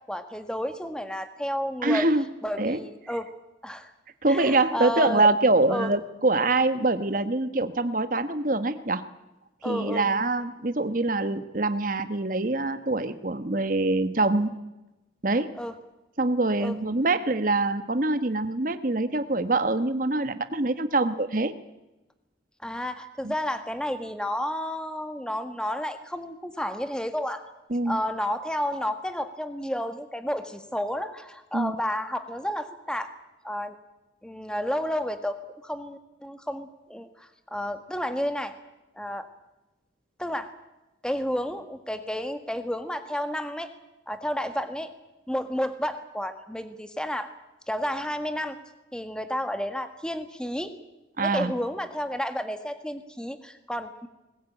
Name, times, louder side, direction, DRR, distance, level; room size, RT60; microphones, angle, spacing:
voice 1, 0.1-2.1 2.4-3.3 3.6-3.9 4.3-5.3 5.7-5.9 9.6-10.0 15.6-15.7 16.6-16.7 22.6-27.4 27.8-33.1 33.4-33.7 34.2-35.4 35.6-38.5 38.9-39.3 40.2-40.5 41.0-43.7 44.1-44.9 45.3-47.3 47.7-48.6 48.9-50.7 51.2-54.1, equal, 5° left, 9 dB, 1.6 m, -31 dB
voice 2, 1.8-2.2 2.6-2.8 4.2-9.0 9.6-14.6 15.2-15.5 16.2-21.5 23.2-23.3 27.7-28.0 31.5-31.7 51.2-51.5, right 2 dB, 45° right, 10 dB, 1.2 m, -24 dB
20.5 x 20.0 x 9.0 m, 1.0 s
head